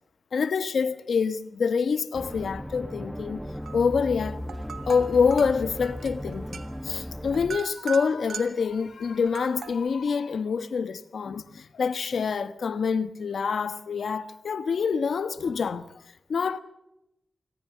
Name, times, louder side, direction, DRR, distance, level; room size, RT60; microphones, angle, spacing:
voice 1, 0.3-3.4 3.7-4.4 4.9-15.8 16.3-16.6, left 5 dB, 80° left, 1.3 m, -26 dB
sound 1, 2.1-7.6, equal, 5° right, 1.1 m, -37 dB
sound 2, 3.6-4.0 4.3-8.7 9.3-9.9, right 6 dB, 80° right, 1.8 m, -40 dB
25.0 x 15.0 x 9.5 m
wide cardioid pair, 75°, 0 cm